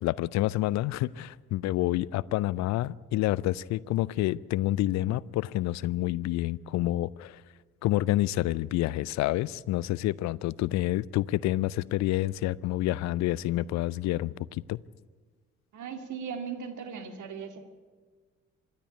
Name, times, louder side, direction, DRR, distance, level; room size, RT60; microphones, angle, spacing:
voice 1, 0.0-7.4 7.8-14.8, left 16 dB, 50° left, 23 dB, 0.5 m, -28 dB
voice 2, 15.7-17.6, right 6 dB, 50° right, 8 dB, 2.1 m, -38 dB
26.0 x 10.5 x 9.6 m, 1.4 s
figure-of-eight pair, 45°, 37 cm